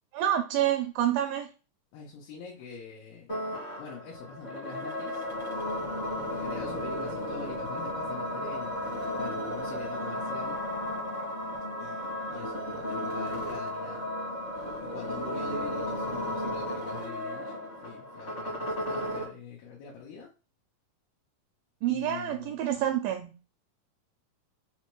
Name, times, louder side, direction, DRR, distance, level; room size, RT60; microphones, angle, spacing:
voice 1, 0.1-1.5 21.8-23.3, right 11 dB, 80° right, 2.2 m, -28 dB
voice 2, 1.9-3.4 3.8-5.2 6.3-10.6 11.8-14.0 14.8-20.3 21.9-22.6, left 6 dB, 90° left, 2.7 m, -45 dB
sound 1, 3.3-19.3, left 1 dB, 65° left, 0.7 m, -34 dB
6.2 x 2.2 x 3.0 m
omnidirectional pair, 4.3 m